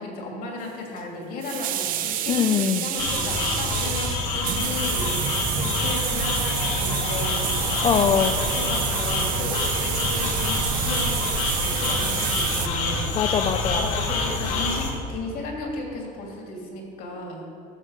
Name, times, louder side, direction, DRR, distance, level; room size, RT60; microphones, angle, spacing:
voice 1, 0.0-8.0 8.4-13.1 13.7-17.5, left 2 dB, 50° left, 0 dB, 2.7 m, -35 dB
sound 1, 1.0-1.1 1.4-12.7, right 11 dB, 50° right, 0.8 m, -29 dB
voice 2, 2.3-2.9 7.8-8.4 13.1-13.9, left 8 dB, 25° left, 6 dB, 0.4 m, -22 dB
sound 2, 3.0-14.9, left 3 dB, 85° left, 1.9 m, -27 dB
Train, 5.0-13.9, right 6 dB, 75° right, 0.9 m, -36 dB
13.5 x 6.4 x 6.5 m, 2.6 s
cardioid pair, 160°, 19 cm